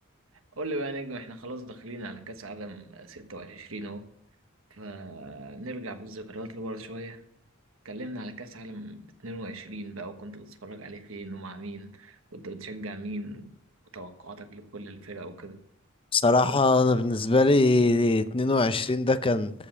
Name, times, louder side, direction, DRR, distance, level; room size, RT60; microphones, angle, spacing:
voice 1, 0.6-4.0 4.7-7.2 7.8-13.5 13.9-15.6, right 1 dB, 70° right, 1.4 m, -39 dB
voice 2, 16.1-19.5, left 2 dB, 25° left, 0.6 m, -22 dB
13.5 x 5.3 x 7.5 m
head